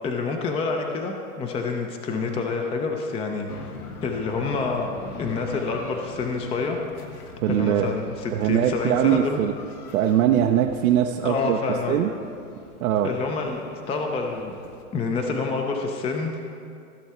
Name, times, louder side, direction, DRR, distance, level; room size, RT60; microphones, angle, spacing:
voice 1, 0.0-3.5 4.0-4.9 5.2-6.8 7.5-9.5 11.2-12.0 13.0-14.6 14.9-16.4, left 4 dB, 15° left, 3 dB, 0.6 m, -27 dB
sound 1, 3.5-14.8, left 4 dB, 85° left, 1.3 m, -43 dB
voice 2, 7.4-7.9 8.3-9.5 9.9-11.6 11.9-12.1 12.8-13.1, right 10 dB, 70° right, 3 dB, 0.7 m, -21 dB
15.5 x 7.0 x 4.3 m, 2.4 s
hypercardioid pair, 125°, 44 cm